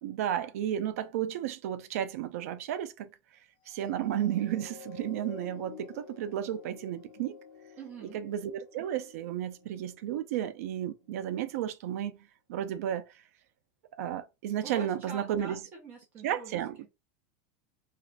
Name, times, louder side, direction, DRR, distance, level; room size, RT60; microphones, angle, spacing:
voice 1, 0.0-3.1 3.7-7.4 8.1-12.2 12.5-13.0 14.0-15.6 16.2-16.8, right 10 dB, 70° right, 0.4 m, -33 dB
sound 1, 3.7-10.4 11.0-11.1, left 7 dB, 35° left, 0.4 m, -51 dB
voice 2, 7.8-8.2 14.6-16.9, right 4 dB, 25° right, 0.6 m, -45 dB
2.4 x 2.4 x 3.1 m
supercardioid pair, 180°, 8 cm